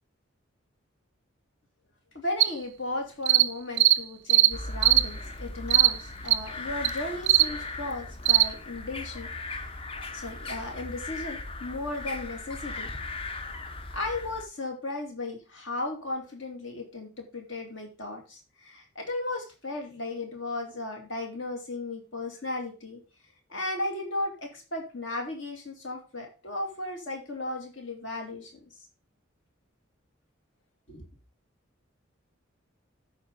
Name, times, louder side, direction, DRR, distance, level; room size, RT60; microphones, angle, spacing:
voice 1, 2.1-9.7 10.1-12.9 13.9-23.0 23.5-28.5 30.9-31.0, left 2 dB, 70° left, 1 dB, 2.6 m, -35 dB
sound 1, 2.4-2.5 3.3-3.5 3.8-4.0 4.3-4.5 4.8-5.0 5.7-5.9 6.3-6.4 6.8-6.9 7.3-7.5 8.3-8.5, right 15 dB, 60° right, 0.4 m, -19 dB
sound 2, 4.5-14.4, left 3 dB, 25° left, 0.5 m, -38 dB
13.0 x 4.8 x 3.8 m, 0.33 s
head